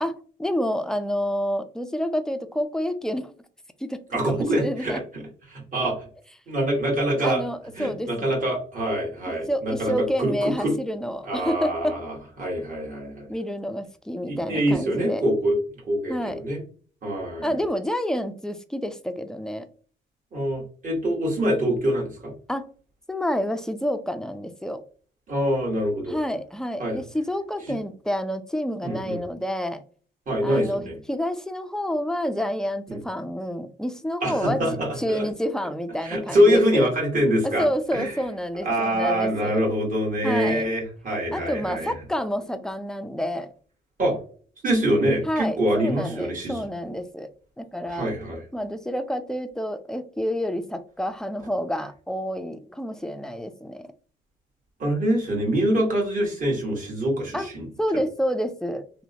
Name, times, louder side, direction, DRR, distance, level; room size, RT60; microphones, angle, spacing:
voice 1, 0.0-3.3 3.8-4.0 4.2-5.0 7.2-8.3 9.5-12.0 13.3-15.2 16.1-16.4 17.4-19.7 22.5-22.7 23.1-24.8 26.1-29.8 30.4-34.6 35.0-36.9 37.4-39.6 40.2-40.7 41.3-43.5 45.3-47.3 47.6-48.1 48.5-53.9 57.3-57.5 57.8-58.8, equal, 5° left, 9 dB, 0.3 m, -28 dB
voice 2, 4.1-5.0 5.5-6.1 6.5-7.5 7.8-10.8 11.2-13.3 14.3-15.6 15.8-16.6 17.0-17.5 20.3-22.3 25.3-26.2 26.8-27.0 28.8-29.2 30.3-31.0 32.9-33.0 34.2-35.3 36.0-37.6 37.9-38.1 38.6-41.9 44.0-44.2 44.6-46.6 47.9-48.4 54.8-57.7, equal, 40° right, -3 dB, 1.5 m, -24 dB
2.8 x 2.1 x 2.8 m, 0.42 s
cardioid pair, 90°, 20 cm